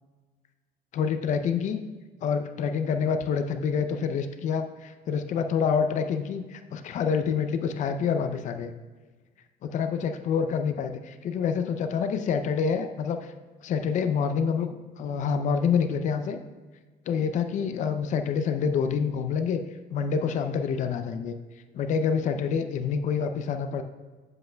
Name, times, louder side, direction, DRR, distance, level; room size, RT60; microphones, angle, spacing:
voice 1, 0.9-1.8 2.2-8.7 9.6-13.3 13.6-16.4 17.1-19.6 19.9-21.4 21.7-23.8, left 6 dB, 45° left, 8 dB, 0.5 m, -27 dB
7.8 x 7.6 x 2.2 m, 1.3 s
cardioid pair, 160°, 17 cm